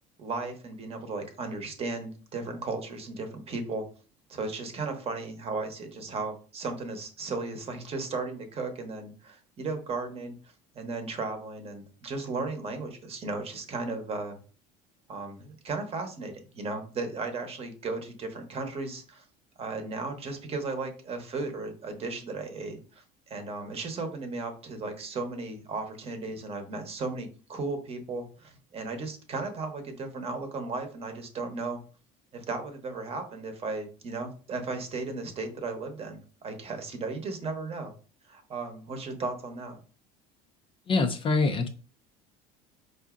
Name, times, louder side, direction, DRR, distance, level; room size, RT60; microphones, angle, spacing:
voice 1, 0.2-3.8 4.3-10.3 10.7-14.4 15.1-19.2 19.6-31.8 32.3-37.9 38.3-39.8, right 3 dB, 35° right, 6 dB, 0.9 m, -35 dB
voice 2, 40.9-41.7, left 3 dB, 30° left, 7 dB, 0.4 m, -24 dB
4.7 x 2.6 x 2.4 m, 0.37 s
cardioid pair, 120°, 18 cm